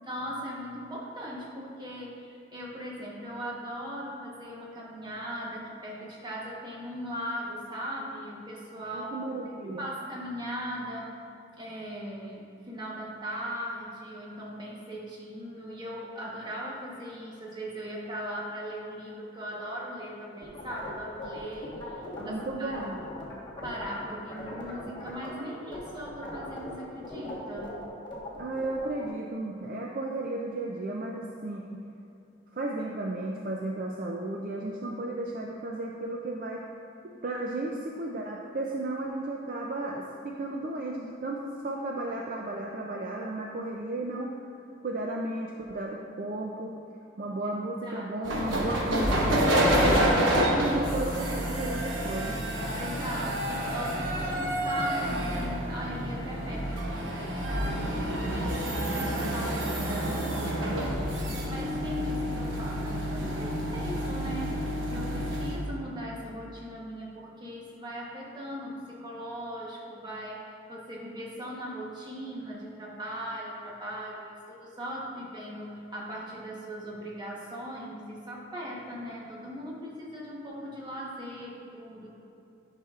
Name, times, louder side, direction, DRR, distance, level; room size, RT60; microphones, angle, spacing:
voice 1, 0.0-9.1 9.5-11.2 11.6-22.9 23.6-27.7 47.8-48.1 52.7-82.1, equal, 20° right, -4 dB, 1.0 m, -39 dB
voice 2, 8.9-9.9 22.2-23.0 28.4-31.8 32.5-36.7 37.2-44.3 44.8-46.8 47.2-52.4, right 2 dB, 45° right, -1 dB, 0.4 m, -34 dB
sound 1, 20.4-24.0 24.3-25.4 25.7-29.1, left 2 dB, 25° left, 1.2 m, -40 dB
sound 2, 48.2-65.6, equal, 85° right, 1.1 m, -28 dB
10.0 x 5.7 x 2.4 m, 2.7 s
head